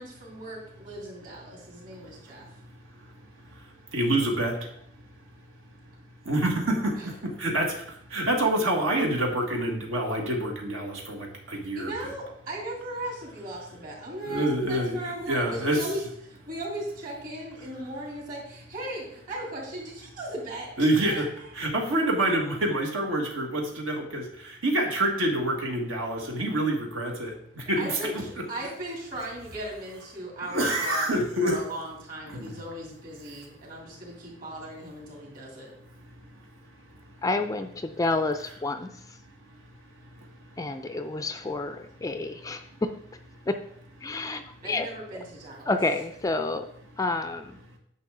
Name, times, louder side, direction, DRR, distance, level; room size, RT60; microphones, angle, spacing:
voice 1, 0.0-2.4 7.0-7.1 11.7-16.0 16.3-21.3 27.8-31.1 31.4-35.7 44.6-45.7, right 1 dB, 45° right, -2 dB, 3.0 m, -37 dB
voice 2, 3.9-4.5 6.2-7.7 8.1-12.1 14.2-15.9 20.8-21.2 21.5-28.2 30.5-31.6 32.3-32.5, right 1 dB, 75° right, 0 dB, 1.6 m, -27 dB
voice 3, 37.2-39.2 40.6-42.9 43.5-43.6 44.0-44.9 45.7-46.7 47.0-47.6, left 2 dB, 15° left, 8 dB, 0.3 m, -29 dB
9.9 x 6.0 x 3.7 m, 0.69 s
head